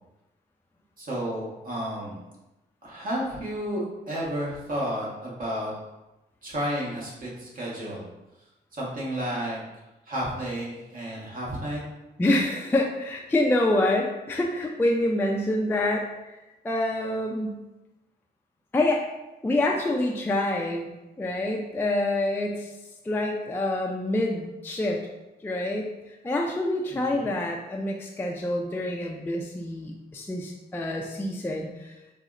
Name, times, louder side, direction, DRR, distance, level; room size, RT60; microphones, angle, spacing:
voice 1, 1.0-2.2 2.8-5.7 6.4-8.0 8.7-9.6 10.1-11.8 26.9-27.4, equal, 50° right, -5 dB, 1.2 m, -32 dB
voice 2, 12.2-16.4 16.6-17.6 18.7-19.1 19.4-20.9 21.2-22.7 23.0-25.0 25.4-25.9 26.2-31.9, left 1 dB, 10° left, 0 dB, 0.3 m, -26 dB
3.9 x 2.0 x 2.4 m, 1.0 s
cardioid pair, 65°, 18 cm